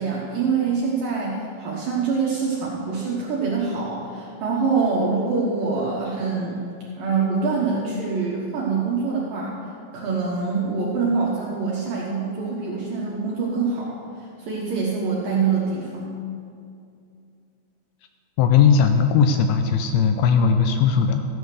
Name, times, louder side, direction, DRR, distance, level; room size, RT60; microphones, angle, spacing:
voice 1, 0.0-6.7 7.0-9.5 9.9-13.9 14.2-16.1, right 4 dB, 65° right, -4 dB, 2.6 m, -25 dB
voice 2, 18.4-21.3, left 6 dB, 85° left, 6 dB, 2.2 m, -18 dB
14.5 x 8.5 x 6.7 m, 2.4 s
omnidirectional pair, 5.0 m